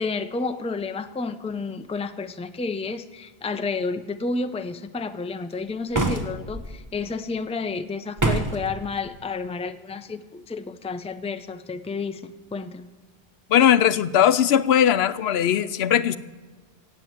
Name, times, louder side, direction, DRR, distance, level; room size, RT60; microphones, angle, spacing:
voice 1, 0.0-12.9, left 4 dB, 10° left, 9 dB, 0.5 m, -31 dB
sound 1, 5.9-6.7 8.2-8.7, right 2 dB, 20° right, 1.1 m, -24 dB
voice 2, 13.5-16.2, left 9 dB, 85° left, 15 dB, 0.9 m, -19 dB
17.0 x 8.3 x 8.0 m, 1.4 s
omnidirectional pair, 1.1 m